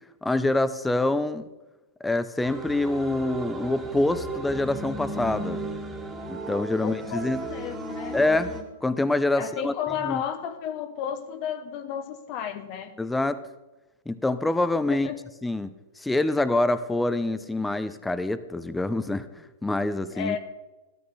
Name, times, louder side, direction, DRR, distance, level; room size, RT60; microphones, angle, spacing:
voice 1, 0.2-1.4 2.0-5.6 6.3-7.4 8.1-8.5 8.8-9.7 10.1-10.2 13.0-13.4 14.1-15.1 15.4-20.4, left 2 dB, 5° left, 0.7 m, -26 dB
sound 1, 2.4-8.6, right 2 dB, 10° right, 1.9 m, -35 dB
voice 2, 6.7-8.2 9.3-13.0 14.9-15.2 20.1-20.4, left 8 dB, 45° left, 1.0 m, -33 dB
13.5 x 13.0 x 4.1 m
hypercardioid pair, 120°, 0 cm